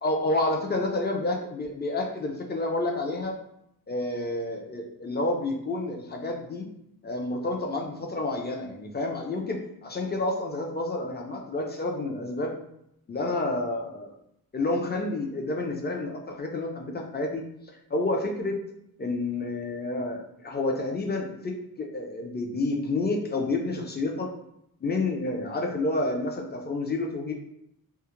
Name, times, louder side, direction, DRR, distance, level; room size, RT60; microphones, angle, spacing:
voice 1, 0.0-3.4 3.9-6.7 7.0-12.5 13.1-14.1 14.5-17.4 17.9-18.6 19.0-24.3 24.8-27.3, left 2 dB, 30° left, 1 dB, 0.4 m, -29 dB
2.3 x 2.1 x 2.9 m, 0.77 s
wide cardioid pair, 110°, 37 cm